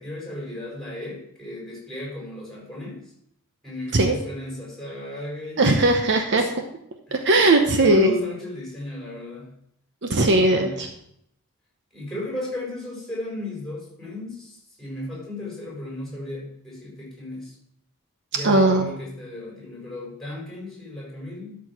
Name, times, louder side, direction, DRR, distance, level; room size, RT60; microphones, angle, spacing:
voice 1, 0.0-3.1 3.6-5.7 6.3-6.5 7.1-7.2 7.7-9.5 10.2-10.8 11.9-17.5 18.3-21.6, left 1 dB, ahead, -4 dB, 4.8 m, -34 dB
voice 2, 5.6-6.4 7.1-8.2 10.0-10.9 18.4-18.9, right 2 dB, 55° right, 4 dB, 0.9 m, -18 dB
12.0 x 4.7 x 6.1 m, 0.74 s
head